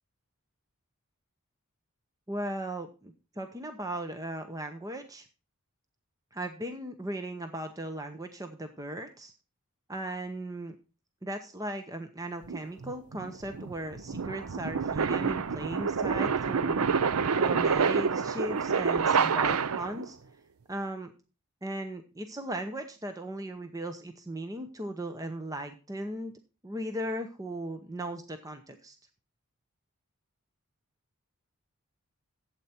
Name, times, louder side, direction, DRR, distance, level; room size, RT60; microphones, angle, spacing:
voice 1, 2.3-5.3 6.3-9.3 9.9-10.7 11.2-16.8 17.4-20.2 20.7-21.1 21.6-26.3 26.6-29.0, right 1 dB, 15° right, 7 dB, 0.8 m, -37 dB
sound 1, 12.5-20.1, right 5 dB, 75° right, 0.6 m, -28 dB
12.0 x 8.2 x 4.3 m, 0.33 s
head